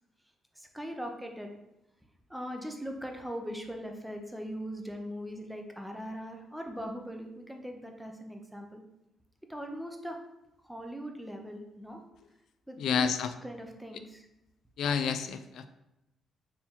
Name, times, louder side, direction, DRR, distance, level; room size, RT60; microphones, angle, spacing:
voice 1, 0.6-1.5 2.3-8.8 9.5-10.2 10.6-12.0 12.7-13.1 13.4-14.3, equal, 5° right, 3 dB, 0.7 m, -40 dB
voice 2, 12.8-13.3 14.8-15.7, left 6 dB, 75° left, 10 dB, 0.3 m, -29 dB
4.4 x 2.8 x 3.8 m, 0.89 s
cardioid pair, 90°, 0 cm